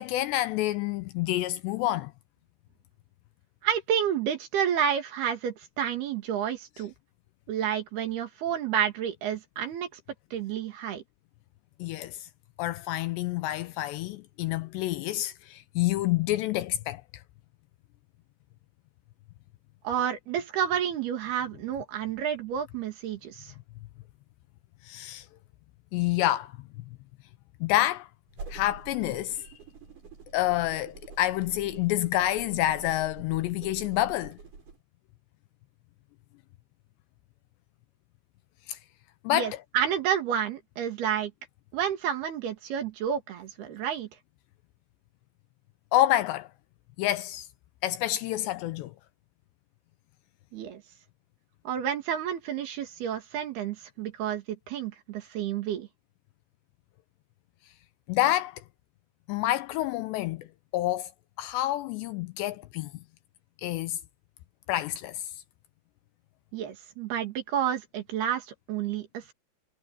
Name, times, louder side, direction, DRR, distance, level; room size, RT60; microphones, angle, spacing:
voice 1, 0.0-2.1 11.8-12.3 12.6-17.0 24.8-25.3 25.9-26.6 27.6-28.1 28.5-29.5 30.3-34.4 38.7-38.8 39.2-39.6 45.9-46.5 47.0-47.5 47.8-48.9 58.1-58.6 59.3-60.5 60.7-61.1 61.4-62.9 63.6-64.0 64.7-65.2, left 15 dB, 80° left, 2.6 m, -28 dB
voice 2, 3.6-6.9 7.5-10.0 10.3-11.0 19.8-23.5 39.3-41.3 41.7-44.1 50.5-50.8 51.7-55.9 66.5-69.3, right 9 dB, 60° right, 3.7 m, -30 dB
sound 1, 28.3-34.8, right 4 dB, 45° right, 8.1 m, -46 dB
omnidirectional pair, 5.4 m